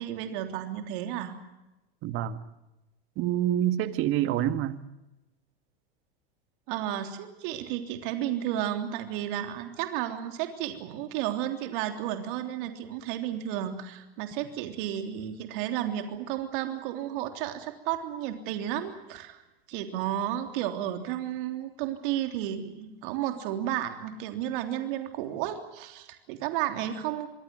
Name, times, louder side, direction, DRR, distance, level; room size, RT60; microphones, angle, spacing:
voice 1, 0.0-1.4 6.7-19.4 19.7-27.3, right 11 dB, 60° right, 3.4 m, -32 dB
voice 2, 2.0-2.4 3.2-4.8, right 12 dB, 40° right, 1.9 m, -27 dB
27.0 x 22.0 x 7.7 m
hypercardioid pair, 120°, 31 cm